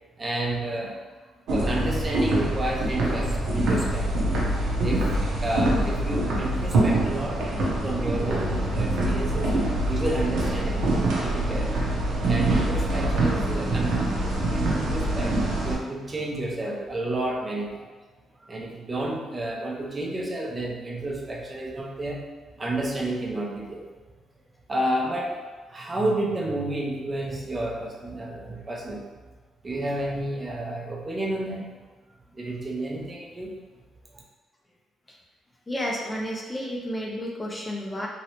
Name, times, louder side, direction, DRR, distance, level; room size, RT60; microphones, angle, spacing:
voice 1, 0.2-1.1 1.5-4.3 4.8-7.4 7.8-9.6 9.9-11.8 12.3-17.8 18.4-22.2 22.6-23.8 24.7-25.3 25.7-29.0 29.6-31.7 32.3-33.6, right 1 dB, 30° right, -1 dB, 0.6 m, -31 dB
sound 1, 1.5-15.8, right 1 dB, 80° right, 0.7 m, -25 dB
voice 2, 35.7-38.1, equal, 15° left, -1 dB, 0.5 m, -31 dB
3.0 x 2.7 x 2.9 m, 1.4 s
cardioid pair, 90°, 0 cm